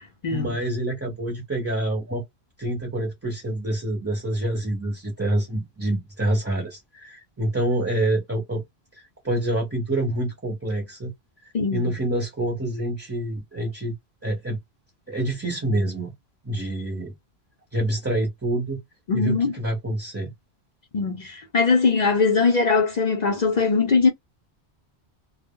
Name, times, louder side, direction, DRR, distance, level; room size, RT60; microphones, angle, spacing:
voice 1, 0.3-2.2 2.6-8.6 8.9-11.1 11.7-13.9 14.2-14.6 15.1-16.1 16.4-17.1 17.7-18.8 19.1-20.3, right 1 dB, 15° right, 0.6 m, -27 dB
voice 2, 11.5-11.9 19.1-19.5 20.9-24.1, left 4 dB, 50° left, 0.6 m, -21 dB
2.0 x 2.0 x 3.5 m
omnidirectional pair, 1.1 m